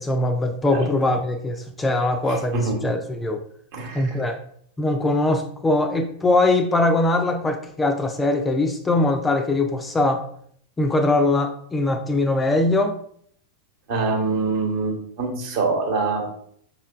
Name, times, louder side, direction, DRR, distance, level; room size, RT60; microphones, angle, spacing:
voice 1, 0.0-3.4 3.9-4.4 4.8-10.2 10.8-13.0, left 2 dB, 15° left, 5 dB, 0.3 m, -21 dB
voice 2, 2.3-2.8 3.7-4.2 13.9-16.2, right 3 dB, 50° right, 1 dB, 1.0 m, -25 dB
5.4 x 3.1 x 2.3 m, 0.64 s
figure-of-eight pair, 90°, 0 cm